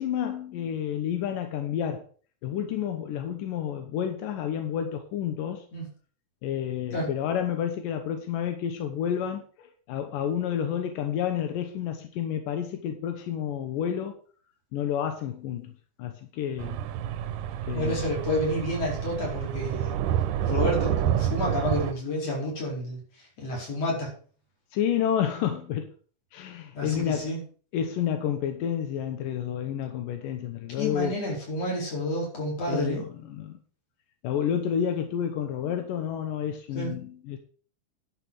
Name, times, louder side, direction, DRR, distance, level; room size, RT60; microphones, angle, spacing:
voice 1, 0.0-2.0 2.4-5.7 6.4-14.2 14.7-15.7 16.0-16.8 17.7-18.0 24.7-25.9 26.3-27.3 27.7-31.2 32.7-33.6 34.2-37.4, left 9 dB, 85° left, 6 dB, 2.7 m, -30 dB
sound 1, 16.6-21.9, right 10 dB, 80° right, 2.2 m, -28 dB
voice 2, 17.7-20.0 20.5-23.0 23.4-24.1 26.7-27.4 30.8-33.0 36.7-36.9, left 1 dB, 50° left, -2 dB, 5.8 m, -29 dB
11.5 x 6.7 x 6.5 m, 0.43 s
omnidirectional pair, 3.7 m